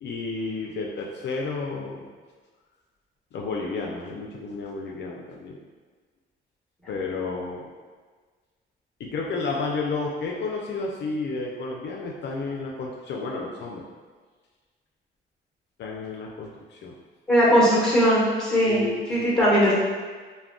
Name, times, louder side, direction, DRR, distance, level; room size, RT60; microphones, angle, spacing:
voice 1, 0.0-2.0 3.3-5.6 6.9-7.6 9.0-13.8 15.8-16.9 18.6-19.4, left 3 dB, 60° left, -2 dB, 0.4 m, -31 dB
voice 2, 17.3-19.7, equal, 5° left, -6 dB, 1.0 m, -19 dB
2.2 x 2.2 x 3.5 m, 1.5 s
cardioid pair, 90°, 20 cm